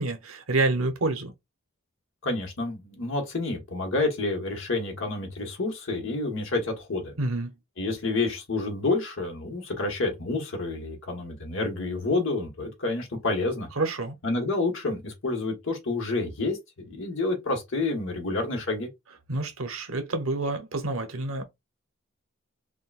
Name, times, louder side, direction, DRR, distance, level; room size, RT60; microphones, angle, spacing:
voice 1, 0.0-1.3 7.2-7.5 13.8-14.1 19.3-21.4, right 2 dB, 90° right, 0.8 m, -28 dB
voice 2, 2.2-7.1 7.8-13.7 14.2-18.9, left 3 dB, 70° left, 1.2 m, -29 dB
3.7 x 2.2 x 2.4 m
head